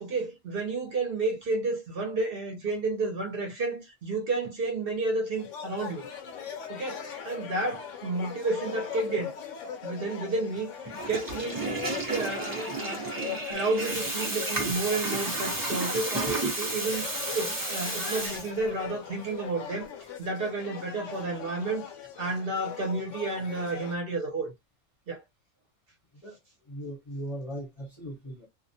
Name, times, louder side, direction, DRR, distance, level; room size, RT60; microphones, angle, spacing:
voice 1, 0.0-6.1 6.7-9.3 9.8-10.7 11.1-11.7 12.0-17.1 17.3-19.9 20.2-21.8 22.2-24.5 25.1-25.2, right 3 dB, 55° right, 0.8 m, -31 dB
sound 1, 5.4-24.0, left 7 dB, 85° left, 1.0 m, -41 dB
Water tap faucet / Toilet flush, 10.8-18.9, right 2 dB, 25° right, 0.5 m, -32 dB
voice 2, 26.7-28.5, right 1 dB, 35° left, 0.7 m, -38 dB
2.3 x 2.1 x 2.6 m
omnidirectional pair, 1.3 m